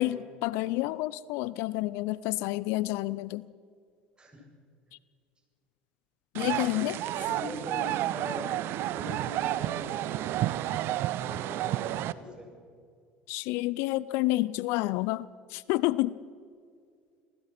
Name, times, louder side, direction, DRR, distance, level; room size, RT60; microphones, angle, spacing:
voice 1, 0.0-3.5 6.3-7.0 13.3-16.2, left 18 dB, 65° left, 20 dB, 0.5 m, -29 dB
sound 1, 6.3-12.1, right 14 dB, 55° right, 0.8 m, -31 dB
voice 2, 7.0-10.4 11.2-12.5, equal, 20° right, 1 dB, 7.8 m, -42 dB
27.5 x 17.5 x 6.0 m, 2.2 s
hypercardioid pair, 70°, 5 cm